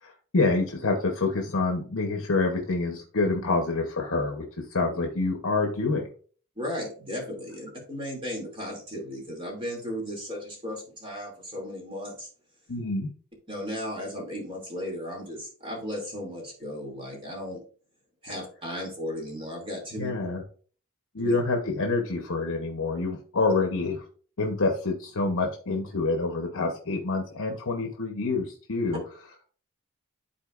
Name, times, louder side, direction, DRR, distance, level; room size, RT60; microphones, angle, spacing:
voice 1, 0.0-6.1 12.7-13.1 19.9-20.4 21.1-24.0 24.4-29.0, left 3 dB, 60° left, 3 dB, 0.9 m, -27 dB
voice 2, 6.6-12.3 13.5-17.6 18.2-20.1 21.2-21.3, equal, 25° right, -1 dB, 2.5 m, -35 dB
11.5 x 4.3 x 2.5 m, 0.43 s
head